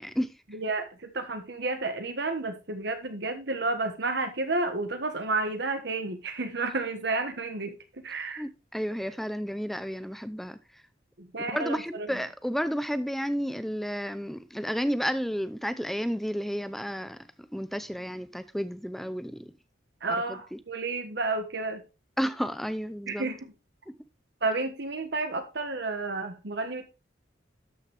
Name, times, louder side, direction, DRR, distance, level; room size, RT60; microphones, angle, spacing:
voice 1, 0.0-0.3 8.4-10.6 11.5-17.2 17.5-19.5 20.3-20.6 22.2-23.3 23.9-24.0, equal, ahead, 0.6 m, -32 dB
voice 2, 0.5-8.4 11.2-12.2 20.0-21.8 23.1-23.5 24.4-26.8, right 3 dB, 65° right, 1.4 m, -31 dB
12.5 x 5.9 x 3.4 m
head